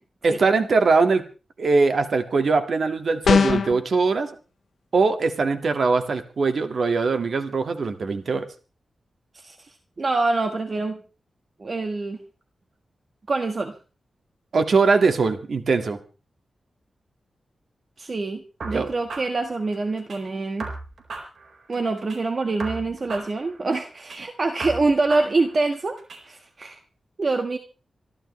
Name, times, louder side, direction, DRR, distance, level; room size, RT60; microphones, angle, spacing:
voice 1, 0.2-1.2 1.6-4.3 4.9-8.5 14.5-16.0 18.7-18.9, right 4 dB, 60° right, 7 dB, 1.9 m, -21 dB
sound 1, 3.2-3.8, left 5 dB, 70° left, 1.0 m, -19 dB
voice 2, 10.0-11.0 11.6-12.2 13.3-13.7 18.0-20.7 21.7-26.0 26.3-26.8 27.2-27.6, right 3 dB, 45° right, 6 dB, 1.5 m, -25 dB
sound 2, 18.6-20.2 20.6-22.2 22.6-24.2 24.6-26.2, right 3 dB, 80° right, 4.6 m, -37 dB
27.0 x 12.5 x 3.2 m, 0.35 s
wide cardioid pair, 100°, 0 cm